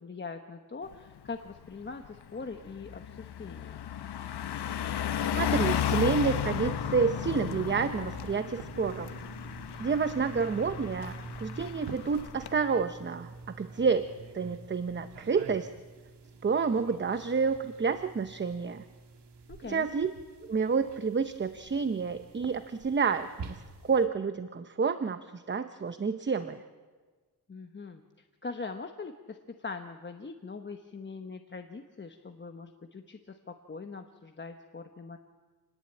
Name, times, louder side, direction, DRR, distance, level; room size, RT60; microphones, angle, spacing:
voice 1, 0.0-3.8 19.5-19.9 27.5-28.0 28.4-35.2, left 4 dB, 25° left, 6 dB, 1.1 m, -42 dB
Car passing by, 0.9-1.2 1.6-12.5, left 10 dB, 75° left, 1.0 m, -34 dB
voice 2, 5.3-9.1 9.8-11.2 11.4-15.7 16.4-18.8 19.6-20.1 20.5-26.6, right 5 dB, 30° right, 10 dB, 0.8 m, -29 dB
sound 1, 5.6-24.0, right 3 dB, 85° right, 2.2 m, -46 dB
28.0 x 19.5 x 8.9 m, 1.4 s
wide cardioid pair, 165°, 40 cm